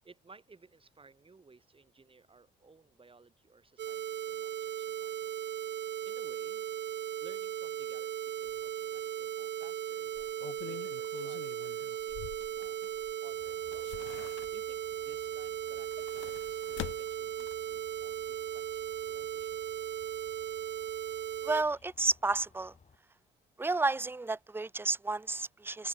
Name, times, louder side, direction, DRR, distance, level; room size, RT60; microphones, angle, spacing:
voice 1, 0.0-5.3 6.0-6.7 7.2-10.3 10.6-12.2 12.6-12.8 13.2-19.6, right 4 dB, 25° right, 3.7 m, -59 dB
sound 1, 3.8-21.6, right 10 dB, 60° right, 1.2 m, -37 dB
sound 2, 8.5-8.6 9.0-9.1 10.1-13.1 13.5-14.9 15.7-17.8 18.2-18.3, left 19 dB, 85° left, 0.4 m, -46 dB
sound 3, 13.3-23.0, left 5 dB, 35° left, 8.0 m, -63 dB
voice 2, 21.4-22.7 23.6-25.9, right 3 dB, 10° right, 0.7 m, -31 dB
open air
cardioid pair, 90°, 20 cm